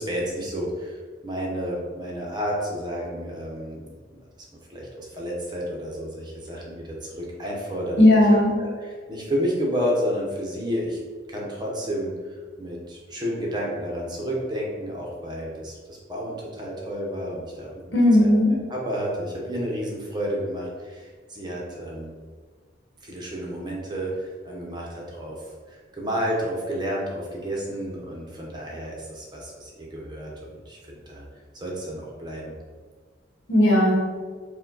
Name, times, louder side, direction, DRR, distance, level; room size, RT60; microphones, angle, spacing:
voice 1, 0.0-4.2 4.7-8.2 8.6-11.0 11.3-12.1 12.6-17.8 18.2-22.1 23.0-25.4 25.7-31.2 31.5-32.5, equal, 25° right, -2 dB, 0.7 m, -31 dB
voice 2, 8.0-8.5 17.9-18.5 33.5-34.0, left 1 dB, 80° left, -2 dB, 1.0 m, -16 dB
4.8 x 2.2 x 3.8 m, 1.5 s
head